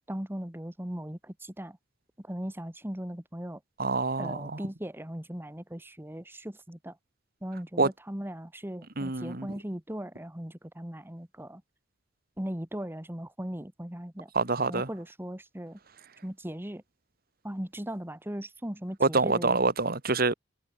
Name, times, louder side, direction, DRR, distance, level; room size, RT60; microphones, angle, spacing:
voice 1, 0.1-1.8 2.2-3.6 4.2-7.0 7.4-11.6 12.4-14.3 14.7-15.8 16.2-16.8 17.4-19.6, equal, 10° right, 1.7 m, -38 dB
voice 2, 3.8-4.6 7.8-7.9 9.0-9.5 14.3-14.9 19.0-20.3, right 3 dB, 50° right, 2.0 m, -26 dB
head